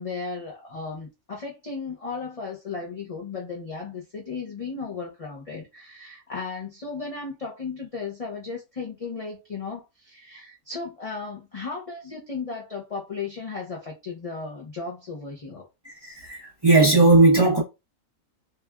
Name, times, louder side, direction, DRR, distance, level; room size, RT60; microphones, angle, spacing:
voice 1, 0.0-15.7 17.4-17.5, left 4 dB, 50° left, 0.4 m, -35 dB
voice 2, 15.8-17.6, right 2 dB, 20° right, 0.7 m, -17 dB
3.1 x 2.2 x 2.3 m
omnidirectional pair, 1.5 m